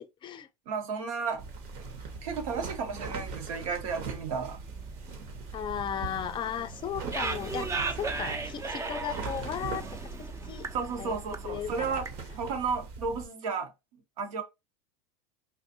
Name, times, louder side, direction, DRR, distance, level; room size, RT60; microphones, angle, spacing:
voice 1, 0.7-1.4 2.2-4.6 10.7-12.1 12.3-13.7 14.2-14.4, right 5 dB, 80° right, 1.2 m, -33 dB
sound 1, 1.4-1.9 2.3-2.4 2.6-2.8 3.1-3.2 3.5-12.3, right 4 dB, 15° right, 0.6 m, -38 dB
sound 2, 1.4-13.3, right 4 dB, 55° right, 1.1 m, -41 dB
voice 2, 5.5-10.7 11.0-11.2 11.4-12.0, left 9 dB, 30° left, 0.5 m, -36 dB
4.1 x 2.6 x 2.7 m
supercardioid pair, 105°, 17 cm